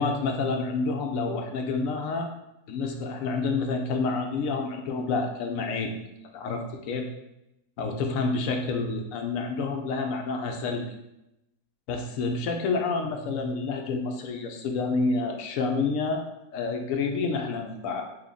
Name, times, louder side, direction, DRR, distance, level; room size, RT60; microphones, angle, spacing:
voice 1, 0.0-2.3 2.7-6.1 6.3-7.1 7.8-10.8 11.9-16.2 16.5-18.1, left 4 dB, 70° left, 4 dB, 0.9 m, -28 dB
4.7 x 2.2 x 3.5 m, 0.88 s
omnidirectional pair, 1.6 m